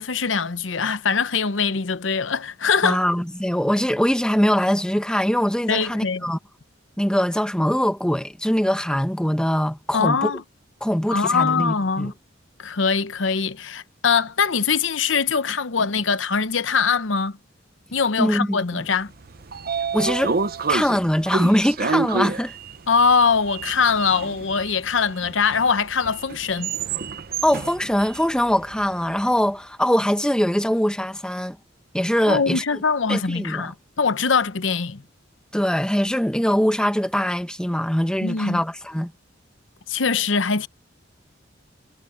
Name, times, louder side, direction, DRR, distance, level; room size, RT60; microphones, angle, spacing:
voice 1, 0.0-3.0 5.7-6.3 9.9-10.4 11.1-12.1 12.6-17.4 17.9-19.1 22.9-26.7 32.3-35.0 38.2-38.6 39.9-40.7, left 5 dB, 85° left, 0.9 m, -22 dB
voice 2, 2.8-6.4 7.0-10.3 10.8-12.1 18.2-18.9 19.9-20.4 20.7-22.5 27.4-31.6 31.9-32.6 33.1-33.7 35.5-39.1, equal, 5° left, 1.2 m, -22 dB
Sliding door, 19.1-29.2, right 4 dB, 50° right, 0.8 m, -29 dB
head